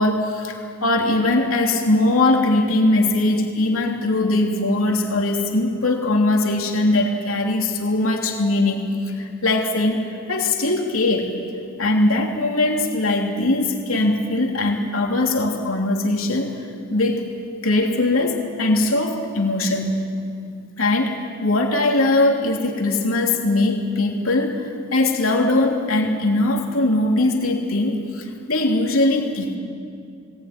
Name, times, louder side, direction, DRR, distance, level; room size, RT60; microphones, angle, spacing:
voice 1, 0.0-11.3 11.8-16.5 16.9-17.3 17.6-20.0 20.8-29.6, left 2 dB, 85° left, 1 dB, 3.0 m, -20 dB
22.5 x 20.0 x 9.6 m, 2.5 s
head